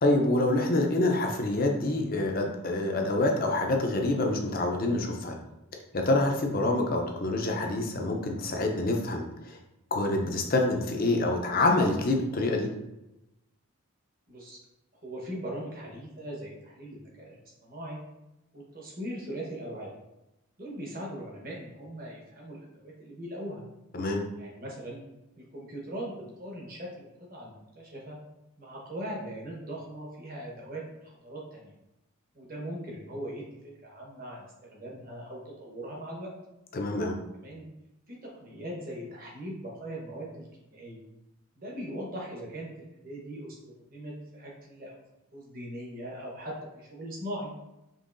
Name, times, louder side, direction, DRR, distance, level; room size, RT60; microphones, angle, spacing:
voice 1, 0.0-5.3 5.9-9.6 9.9-12.7 23.9-24.2 36.7-37.2, left 2 dB, 40° left, 2 dB, 0.5 m, -26 dB
voice 2, 14.3-14.6 15.0-18.0 18.5-19.9 20.6-23.6 24.4-25.0 25.4-28.2 28.6-31.7 32.3-36.3 37.4-37.6 38.1-41.0 41.5-43.6 43.9-44.9 45.3-47.5, right 1 dB, 40° right, -3 dB, 1.1 m, -40 dB
5.3 x 3.1 x 2.5 m, 0.93 s
head